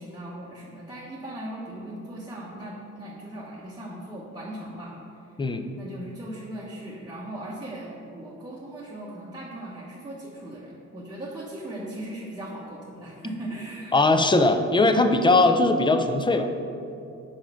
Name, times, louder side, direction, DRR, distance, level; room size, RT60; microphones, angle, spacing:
voice 1, 0.0-5.3 5.7-14.4, right 1 dB, 15° right, -7 dB, 0.9 m, -38 dB
voice 2, 13.9-16.5, left 2 dB, 15° left, 7 dB, 0.4 m, -20 dB
4.7 x 4.5 x 5.6 m, 2.7 s
cardioid pair, 90°, 30 cm